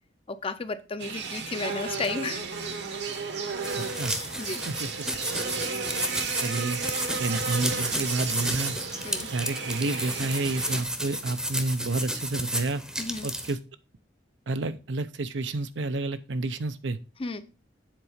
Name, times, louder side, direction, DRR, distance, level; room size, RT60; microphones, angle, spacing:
voice 1, 0.3-2.4 4.4-4.6 9.0-9.3 13.0-13.3 17.2-17.5, left 3 dB, 30° left, 0.6 m, -33 dB
sound 1, 1.0-10.8, right 5 dB, 65° right, 1.1 m, -34 dB
sound 2, 3.6-13.5, right 1 dB, 5° right, 0.7 m, -32 dB
voice 2, 3.8-4.2 4.7-4.9 6.4-6.8 7.2-8.8 9.3-12.8 13.2-13.6 14.5-17.0, right 2 dB, 85° right, 0.6 m, -30 dB
7.5 x 4.0 x 5.0 m
head